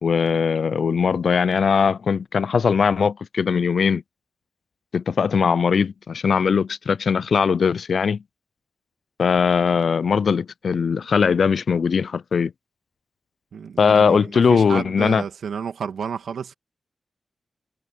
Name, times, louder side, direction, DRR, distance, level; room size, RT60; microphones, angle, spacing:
voice 1, 0.0-4.0 4.9-8.2 9.2-12.5 13.8-15.2, left 6 dB, 75° left, 0.4 m, -20 dB
voice 2, 13.5-16.5, right 7 dB, 85° right, 2.2 m, -31 dB
cardioid pair, 40°, 0 cm